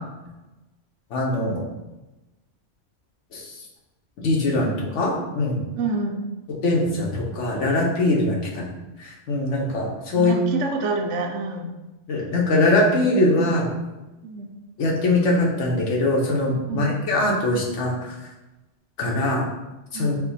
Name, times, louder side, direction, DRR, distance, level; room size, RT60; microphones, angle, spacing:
voice 1, 1.1-1.7 3.3-3.5 4.2-5.6 6.6-8.7 9.0-10.3 12.1-13.7 14.8-18.1 19.0-19.5 19.9-20.1, left 2 dB, 90° left, -2 dB, 1.2 m, -22 dB
voice 2, 5.7-6.3 10.1-11.7 14.2-14.5 16.7-17.0 19.9-20.2, right 3 dB, 85° right, 4 dB, 0.9 m, -27 dB
4.5 x 2.2 x 4.0 m, 1.0 s
omnidirectional pair, 1.2 m